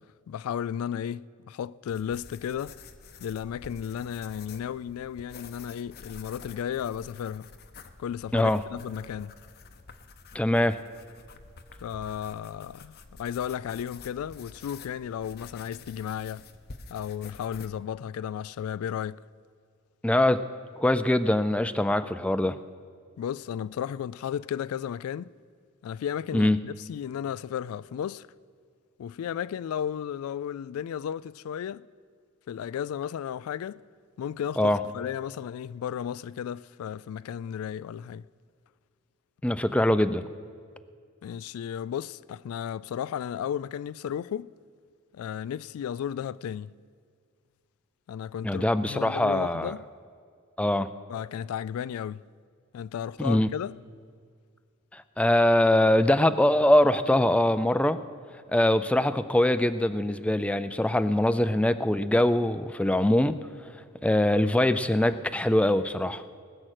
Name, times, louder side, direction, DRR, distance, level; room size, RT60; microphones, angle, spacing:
voice 1, 0.0-2.8 3.2-7.5 8.0-9.4 11.8-16.5 16.9-19.2 23.2-25.3 25.8-28.3 29.0-31.9 32.5-33.8 34.2-38.2 41.2-44.5 45.1-46.7 48.1-49.8 51.1-52.2 52.7-53.8, left 9 dB, 85° left, 0.3 m, -34 dB
sound 1, 1.9-17.7, left 4 dB, 50° left, 0.7 m, -49 dB
voice 2, 10.3-10.8 20.0-20.4 20.8-22.6 26.3-26.6 34.6-34.8 39.4-40.2 48.4-49.7 50.6-50.9 53.2-53.5 54.9-58.0 58.5-63.4 64.0-66.2, left 1 dB, 5° left, 0.4 m, -23 dB
20.0 x 7.5 x 6.5 m
head